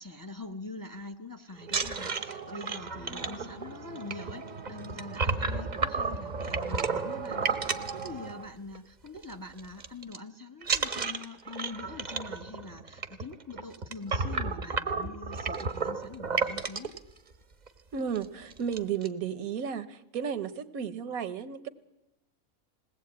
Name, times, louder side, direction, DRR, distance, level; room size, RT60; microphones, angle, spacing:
voice 1, 0.0-16.9, left 3 dB, 15° left, 7 dB, 0.7 m, -44 dB
sound 1, 1.6-8.8 9.1-9.3 9.6-10.2 10.6-17.0 17.7-17.8 18.1-18.2 18.5-19.1, right 4 dB, 35° right, 0.9 m, -32 dB
voice 2, 3.0-3.6 17.9-21.7, right 7 dB, 75° right, 12 dB, 1.4 m, -34 dB
20.5 x 17.5 x 8.6 m, 0.92 s
omnidirectional pair, 1.5 m